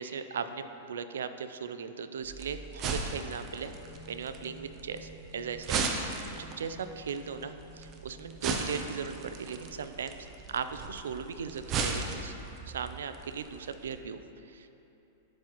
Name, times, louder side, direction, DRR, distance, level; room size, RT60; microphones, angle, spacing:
voice 1, 0.0-3.7 4.1-12.3 12.7-14.7, right 6 dB, 85° right, 11 dB, 0.3 m, -38 dB
sound 1, 2.2-14.0, right 4 dB, 35° right, 0.6 m, -37 dB
sound 2, 3.7-9.7, right 1 dB, 85° left, 1.6 m, -53 dB
11.5 x 4.6 x 2.9 m, 2.9 s
hypercardioid pair, 120°, 0 cm